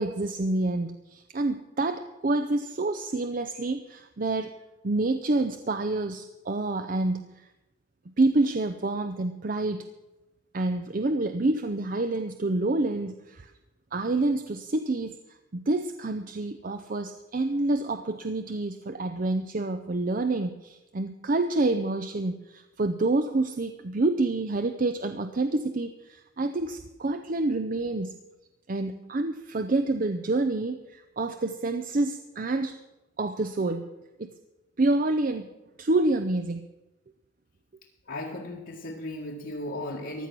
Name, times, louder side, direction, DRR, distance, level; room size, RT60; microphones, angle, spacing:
voice 1, 0.0-4.5 4.8-7.5 8.2-9.8 10.5-13.5 13.9-15.2 15.5-28.2 28.7-32.8 33.2-33.9 34.2-34.3 34.8-35.5 35.8-36.6, right 2 dB, 45° right, 8 dB, 0.6 m, -28 dB
voice 2, 38.0-40.3, left 1 dB, 70° left, -4 dB, 1.8 m, -36 dB
15.5 x 11.0 x 6.0 m, 1.0 s
head